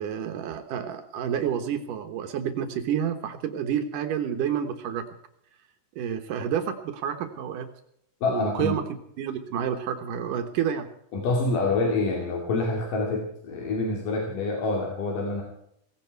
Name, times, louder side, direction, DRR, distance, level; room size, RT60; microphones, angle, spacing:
voice 1, 0.0-5.1 6.0-7.7 8.3-8.8 9.2-10.9, right 8 dB, 80° right, 6 dB, 2.9 m, -29 dB
voice 2, 8.2-8.8 11.1-15.4, left 3 dB, 85° left, 0 dB, 4.1 m, -26 dB
17.5 x 17.0 x 4.6 m, 0.73 s
omnidirectional pair, 3.7 m